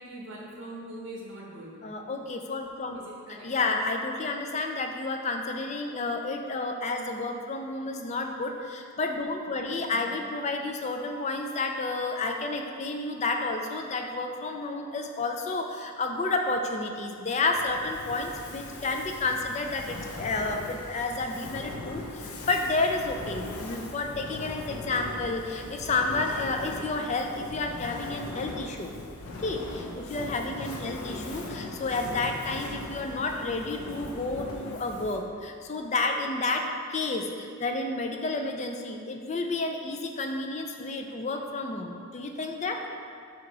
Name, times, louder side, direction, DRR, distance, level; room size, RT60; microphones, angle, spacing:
voice 1, 0.0-1.8 2.9-3.5 9.5-10.1 27.0-27.2 30.8-31.4, right 1 dB, 60° right, -3 dB, 1.2 m, -44 dB
voice 2, 1.8-3.0 3.3-28.9 29.4-42.8, left 3 dB, 30° left, 4 dB, 0.4 m, -31 dB
Fire, 17.4-35.4, left 2 dB, 80° left, 0.6 m, -40 dB
6.0 x 2.9 x 5.4 m, 2.3 s
head